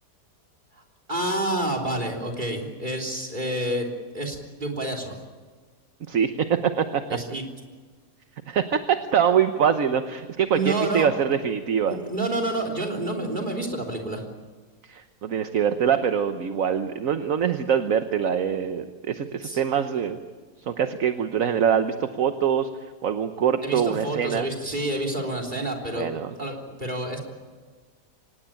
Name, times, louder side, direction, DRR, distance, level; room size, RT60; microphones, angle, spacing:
voice 1, 1.1-3.9 4.1-5.2 7.1-7.4 10.5-11.1 11.9-14.3 19.4-19.6 23.6-26.1 26.4-27.2, right 1 dB, 25° right, 1 dB, 3.7 m, -28 dB
voice 2, 6.1-7.0 8.5-12.0 14.9-20.2 20.6-22.7 23.0-24.5 25.9-26.3, right 8 dB, 55° right, 8 dB, 1.3 m, -24 dB
25.5 x 19.0 x 8.9 m, 1.4 s
omnidirectional pair, 1.8 m